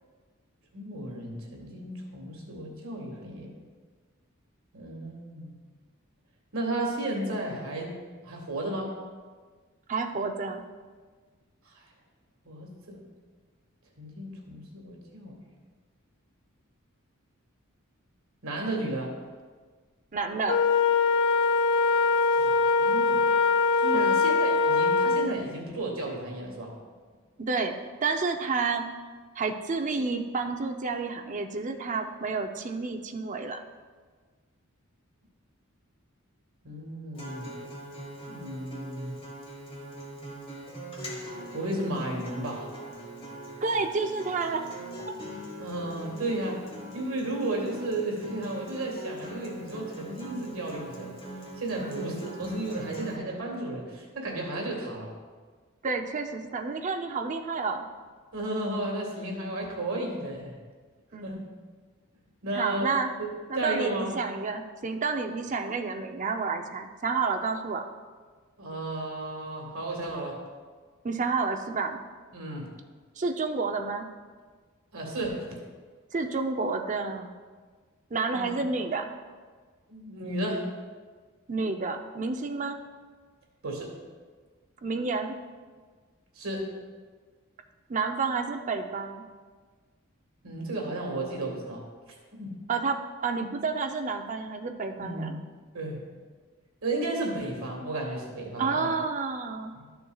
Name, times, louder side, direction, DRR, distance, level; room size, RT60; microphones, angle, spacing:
voice 1, 0.7-3.5 4.7-5.5 6.5-7.9 8.2-9.0 11.7-11.8 12.5-13.0 14.0-15.4 18.4-19.1 22.4-23.2 23.8-26.7 36.6-37.5 38.3-39.2 41.5-42.7 45.6-46.6 46.9-51.2 51.6-55.1 58.3-60.6 61.2-61.4 62.4-62.9 63.2-63.3 63.5-64.1 68.6-70.4 72.3-72.7 74.9-75.5 78.3-78.4 79.9-80.6 83.6-83.9 86.4-86.7 90.4-91.8 92.4-92.6 95.0-95.3 95.7-96.0 96.8-98.9 99.7-99.8, right 1 dB, 75° right, -1 dB, 1.7 m, -33 dB
voice 2, 9.9-10.6 20.1-20.6 23.9-24.2 27.4-27.7 28.0-28.8 29.4-33.6 43.6-44.7 51.8-52.1 55.8-57.9 61.1-61.4 62.5-63.1 63.5-67.8 71.0-72.0 73.2-74.1 76.1-77.3 78.1-79.1 81.5-82.8 84.8-85.3 87.9-89.2 92.7-93.0 93.2-95.4 98.6-99.7, right 4 dB, 35° right, 5 dB, 0.5 m, -30 dB
Wind instrument woodwind instrument, 20.5-25.4, left 4 dB, 60° left, 0.4 m, -22 dB
Acoustic guitar, 37.1-53.2, right 1 dB, 25° left, 1.5 m, -42 dB
13.0 x 6.9 x 2.4 m, 1.5 s
head